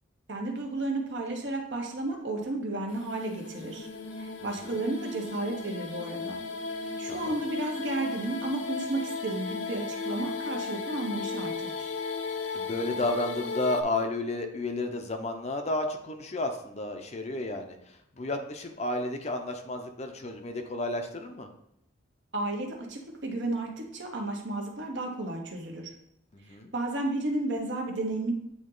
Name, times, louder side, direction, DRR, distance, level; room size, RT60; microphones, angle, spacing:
voice 1, 0.3-3.9 4.2-6.4 7.0-11.9 22.3-25.9 26.7-28.3, right 2 dB, 65° right, 1 dB, 1.1 m, -33 dB
sound 1, 2.9-13.8, left 4 dB, 85° left, 0.6 m, -36 dB
voice 2, 12.5-17.8 18.2-21.5 26.3-26.7, left 2 dB, 35° left, 5 dB, 0.6 m, -32 dB
8.5 x 2.9 x 3.8 m, 0.80 s
head